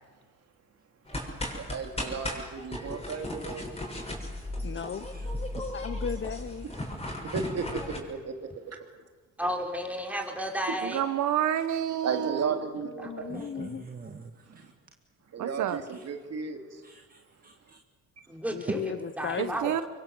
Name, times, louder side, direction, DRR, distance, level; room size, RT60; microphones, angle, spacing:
sound 1, 1.1-8.0, left 1 dB, 20° left, 6.9 m, -36 dB
voice 1, 1.6-3.6 4.0-4.1 7.3-8.8 10.7-10.8 12.0-13.3 14.5-14.7 15.3-16.8, right 5 dB, 55° right, 4 dB, 3.4 m, -34 dB
voice 2, 4.6-5.1 5.7-6.7 12.8-13.9 18.5-19.6, left 7 dB, 40° left, 14 dB, 1.0 m, -36 dB
voice 3, 9.4-11.0 13.0-13.5 18.3-19.7, equal, 5° right, 2 dB, 4.9 m, -33 dB
voice 4, 10.8-12.6 15.4-15.8 19.4-19.8, right 10 dB, 75° right, 12 dB, 1.1 m, -29 dB
voice 5, 13.3-14.7 15.9-16.1 16.8-17.8 18.6-18.7, right 4 dB, 30° right, 4 dB, 1.9 m, -42 dB
25.5 x 23.0 x 7.8 m, 1.4 s
cardioid pair, 90°, 30 cm